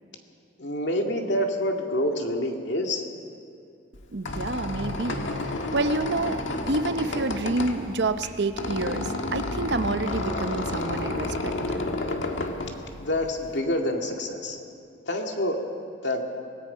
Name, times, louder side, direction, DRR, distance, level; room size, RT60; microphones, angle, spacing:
voice 1, 0.6-3.0 13.0-14.6 15.1-15.6 16.0-16.2, left 1 dB, 70° left, 2 dB, 2.1 m, -27 dB
Squeak, 3.9-13.6, left 2 dB, 90° left, 1.7 m, -31 dB
voice 2, 4.1-5.2 5.7-11.8, right 3 dB, 65° right, 10 dB, 0.8 m, -28 dB
25.5 x 18.5 x 5.6 m, 2.6 s
head